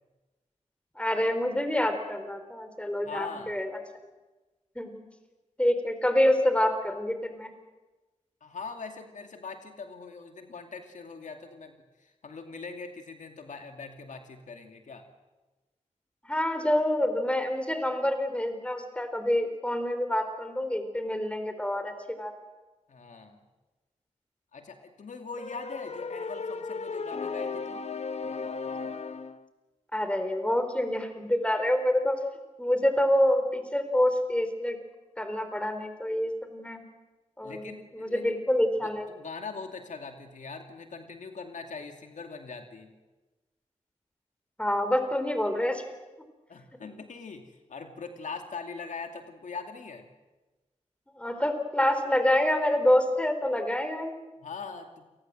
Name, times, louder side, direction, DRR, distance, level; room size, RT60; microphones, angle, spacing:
voice 1, 1.0-3.7 4.8-4.9 5.6-7.5 16.3-22.3 29.9-32.2 32.6-34.8 35.2-36.8 37.4-39.1 44.6-45.8 51.2-54.1, left 1 dB, 10° left, 8 dB, 4.0 m, -27 dB
voice 2, 3.0-3.5 8.4-15.0 22.9-23.4 24.5-27.8 37.4-38.2 38.8-42.9 46.5-50.1 54.4-55.1, left 4 dB, 80° left, 5 dB, 2.5 m, -42 dB
sound 1, 25.4-29.4, left 4 dB, 60° left, 1.3 m, -35 dB
28.5 x 19.0 x 7.7 m, 1.2 s
cardioid pair, 65°, 13 cm